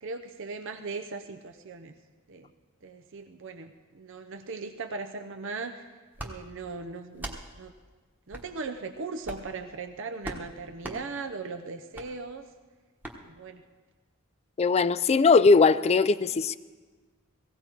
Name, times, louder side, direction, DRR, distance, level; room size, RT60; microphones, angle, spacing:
voice 1, 0.0-1.9 2.3-2.5 2.8-5.9 6.2-7.7 8.3-12.5 13.2-13.6, right 4 dB, 60° right, 0.6 m, -38 dB
sound 1, 6.1-6.3 7.1-7.4 8.3-8.5 9.2-9.5 10.2-10.4 10.8-11.0 11.9-12.1 13.0-13.2, right 1 dB, 10° right, 1.2 m, -38 dB
voice 2, 14.6-16.6, left 4 dB, 30° left, 0.4 m, -20 dB
18.0 x 16.0 x 4.5 m
head